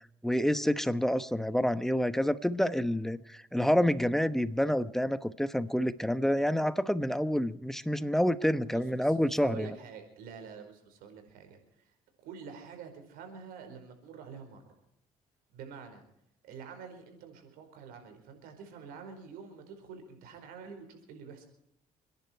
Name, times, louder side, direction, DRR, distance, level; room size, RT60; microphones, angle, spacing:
voice 1, 0.2-9.7, equal, 5° left, 1.1 m, -28 dB
voice 2, 8.4-11.9 12.2-14.6 15.5-16.0 16.4-21.5, right 6 dB, 85° right, 4.7 m, -47 dB
30.0 x 10.5 x 4.6 m
cardioid pair, 85°, 15 cm